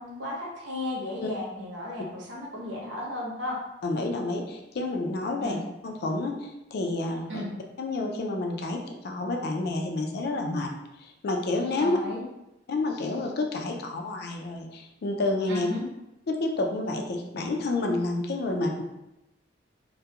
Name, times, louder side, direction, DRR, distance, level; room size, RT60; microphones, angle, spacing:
voice 1, 0.0-3.6 5.4-5.6 7.3-7.5 11.8-12.2 15.5-15.8, left 1 dB, 70° right, -4 dB, 0.8 m, -34 dB
voice 2, 3.8-7.5 7.8-10.7 11.0-12.0 12.7-15.7 16.3-18.8, left 2 dB, 60° left, 2 dB, 0.4 m, -29 dB
2.3 x 2.1 x 2.8 m, 0.90 s
head